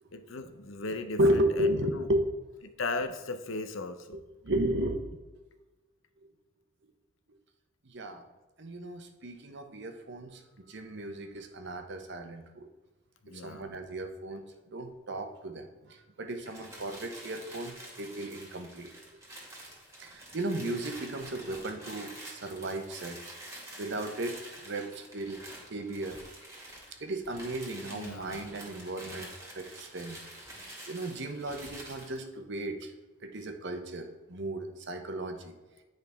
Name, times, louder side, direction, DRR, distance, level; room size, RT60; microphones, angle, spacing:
voice 1, 0.1-2.0 2.8-4.2 13.2-13.7 27.8-28.5, left 3 dB, 70° left, 9 dB, 0.7 m, -37 dB
voice 2, 1.2-2.3 4.4-5.2 7.8-8.2 8.6-12.7 13.3-14.4 14.7-18.9 20.0-23.3 23.8-25.4 25.7-26.2 27.0-29.3 29.5-30.2 30.9-32.9 33.2-35.5, right 1 dB, 60° right, 6 dB, 0.9 m, -34 dB
sound 1, 16.4-32.1, right 1 dB, 15° right, 1.9 m, -47 dB
9.4 x 5.2 x 3.4 m, 1.2 s
head